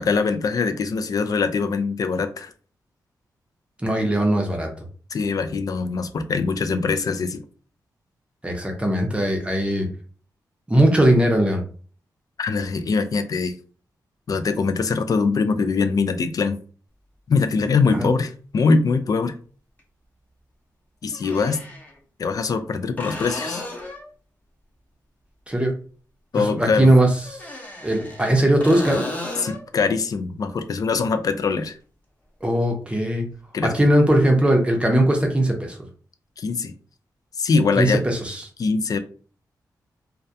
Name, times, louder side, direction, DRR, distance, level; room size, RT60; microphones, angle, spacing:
voice 1, 0.0-2.5 5.1-7.4 12.4-13.5 14.3-16.6 17.3-19.4 21.0-21.6 22.2-23.6 26.3-26.9 29.4-31.8 33.5-33.7 36.4-36.7 37.4-38.0 38.6-39.0, left 4 dB, 55° left, 9 dB, 0.3 m, -22 dB
voice 2, 3.8-4.7 8.4-9.9 10.7-11.6 18.0-18.1 25.5-25.7 26.4-27.4 27.8-29.1 32.4-33.3 33.6-35.8 37.8-38.4, right 1 dB, 15° right, 2 dB, 0.6 m, -19 dB
squeek doors, 17.6-17.7 19.8-19.9 21.1-21.9 23.0-24.1 27.2-28.3 28.6-29.7 33.3-33.4, left 2 dB, 20° left, 0.8 m, -34 dB
2.2 x 2.2 x 2.6 m, 0.41 s
cardioid pair, 70°, 7 cm